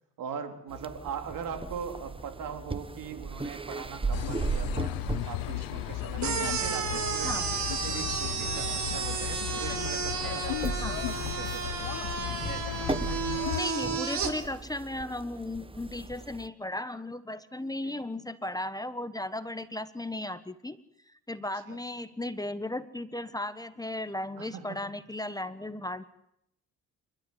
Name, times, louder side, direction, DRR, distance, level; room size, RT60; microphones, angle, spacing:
voice 1, 0.2-5.0 5.3-7.4 7.6-11.8 17.8-18.0 21.7-21.8 24.4-24.8, right 7 dB, 70° right, 6 dB, 3.6 m, -40 dB
sound 1, 0.7-16.5, right 4 dB, 15° right, 1.1 m, -38 dB
sound 2, 4.1-13.6, left 18 dB, 80° left, 0.8 m, -35 dB
sound 3, 6.2-14.3, right 6 dB, 55° right, 4.1 m, -32 dB
voice 2, 13.5-20.8 21.1-26.0, left 1 dB, 10° left, 12 dB, 1.3 m, -36 dB
29.0 x 13.0 x 9.9 m, 0.79 s
cardioid pair, 90°, 35 cm